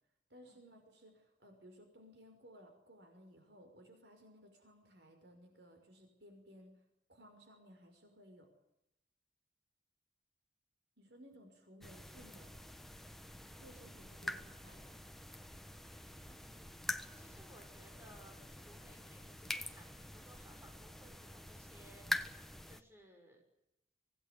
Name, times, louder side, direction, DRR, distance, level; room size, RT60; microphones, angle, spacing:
voice 1, 0.3-6.8 7.1-8.5 11.0-12.5 13.4-14.9, equal, 75° right, 5 dB, 6.0 m, -59 dB
sound 1, 11.8-22.8, left 1 dB, ahead, 1.3 m, -45 dB
voice 2, 16.2-23.4, right 1 dB, 15° right, 2 dB, 6.6 m, -62 dB
25.5 x 18.5 x 9.8 m, 0.85 s
head